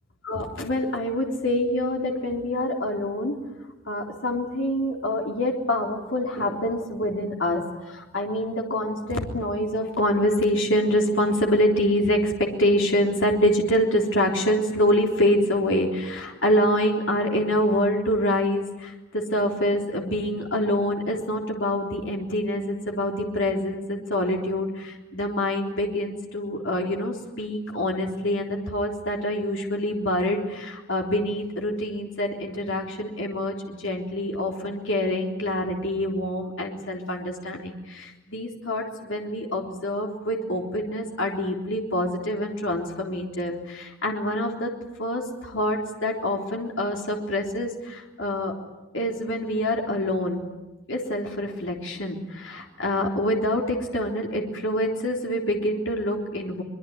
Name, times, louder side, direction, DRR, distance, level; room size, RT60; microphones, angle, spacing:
voice 1, 0.2-3.4 3.9-44.7 45.0-48.5 48.9-50.5 50.9-56.6, left 1 dB, 60° left, 1 dB, 3.6 m, -26 dB
24.5 x 22.0 x 9.5 m, 1.0 s
head